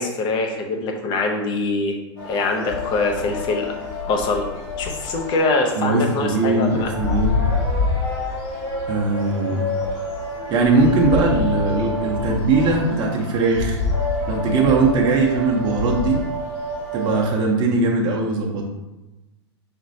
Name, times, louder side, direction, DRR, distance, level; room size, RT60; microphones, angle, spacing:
voice 1, 0.0-1.9 2.3-3.8 4.1-4.5 4.8-6.9, left 3 dB, 30° left, 3 dB, 0.7 m, -23 dB
sound 1, 2.2-17.3, left 2 dB, 50° left, 1.5 m, -27 dB
voice 2, 5.8-7.4 8.9-9.7 10.5-13.8 14.3-16.2 16.9-18.7, right 3 dB, 30° right, -1 dB, 0.8 m, -20 dB
5.1 x 3.0 x 2.7 m, 1.0 s
figure-of-eight pair, 100°, 15 cm